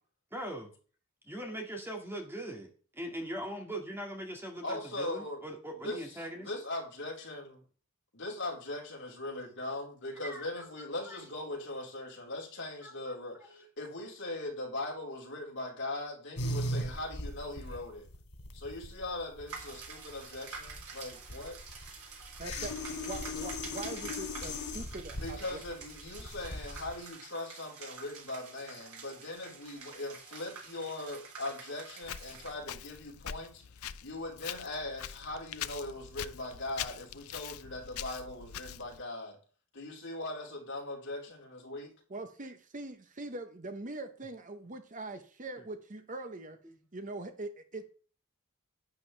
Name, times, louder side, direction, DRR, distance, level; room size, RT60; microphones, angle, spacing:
voice 1, 0.3-0.7 1.2-6.5 10.2-11.5 12.8-13.9 45.6-45.7 46.6-46.8, right 1 dB, 10° right, 2 dB, 2.0 m, -42 dB
voice 2, 4.6-5.4 5.8-7.5 8.2-18.1 18.5-21.6 25.2-33.6 34.0-39.4 39.7-41.9, left 2 dB, 55° left, -2 dB, 4.2 m, -40 dB
sound 1, 16.4-27.0, left 1 dB, 90° left, 2.9 m, -39 dB
sound 2, 19.5-32.6, right 5 dB, 85° right, 3.5 m, -48 dB
voice 3, 22.4-25.6 42.1-46.6 46.9-47.8, right 2 dB, 35° right, 8 dB, 0.9 m, -42 dB
Walk footsteps, 32.0-39.0, left 10 dB, 75° left, 0.5 m, -43 dB
11.5 x 9.5 x 3.3 m, 0.40 s
head